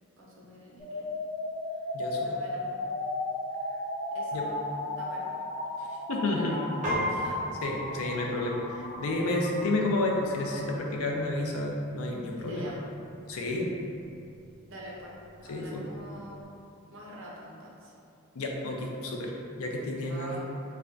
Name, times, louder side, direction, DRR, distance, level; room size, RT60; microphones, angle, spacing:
voice 1, 0.2-1.1 1.7-1.8 2.2-2.6 4.1-5.4 6.2-6.7 7.1-7.4 12.4-12.8 13.5-13.6 14.7-16.4 16.9-17.9 20.0-20.4, equal, 60° right, -4 dB, 0.6 m, -45 dB
sound 1, 0.8-10.8, left 2 dB, 15° left, 1.2 m, -36 dB
voice 2, 1.9-2.4 4.3-4.5 5.8-6.6 7.1-7.2 7.6-12.7 13.3-13.7 15.5-15.9 18.3-19.3 19.6-20.4, left 2 dB, 75° left, 0 dB, 0.5 m, -31 dB
Piano, 6.8-16.4, equal, 35° right, 1.0 m, -40 dB
3.3 x 2.2 x 3.7 m, 2.6 s
head